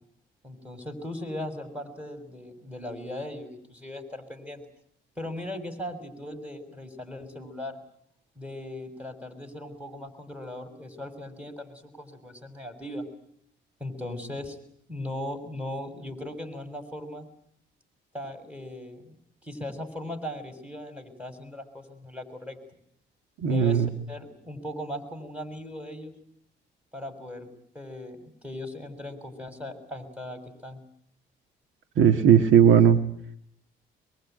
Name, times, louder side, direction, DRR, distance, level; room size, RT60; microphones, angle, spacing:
voice 1, 0.4-4.6 5.2-7.8 8.4-13.1 13.8-14.6 14.9-17.2 18.1-22.6 23.4-26.1 26.9-27.5 27.7-30.8, left 1 dB, 5° right, 6 dB, 6.3 m, -38 dB
voice 2, 23.4-23.9 32.0-33.0, right 8 dB, 80° right, 9 dB, 1.7 m, -17 dB
23.5 x 23.0 x 9.2 m, 0.68 s
cardioid pair, 90°, 20 cm